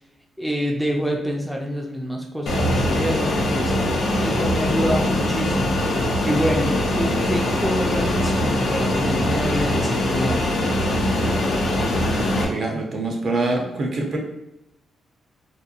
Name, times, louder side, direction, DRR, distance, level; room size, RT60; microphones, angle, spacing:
voice 1, 0.4-3.7 4.2-5.8 6.2-10.4, equal, ahead, 0 dB, 0.3 m, -26 dB
Fixed-wing aircraft airplane, 2.5-12.5, left 1 dB, 70° left, 0.5 m, -22 dB
voice 2, 12.4-14.2, right 2 dB, 55° right, 1 dB, 0.6 m, -25 dB
2.8 x 2.2 x 2.4 m, 0.87 s
cardioid pair, 120°, 0 cm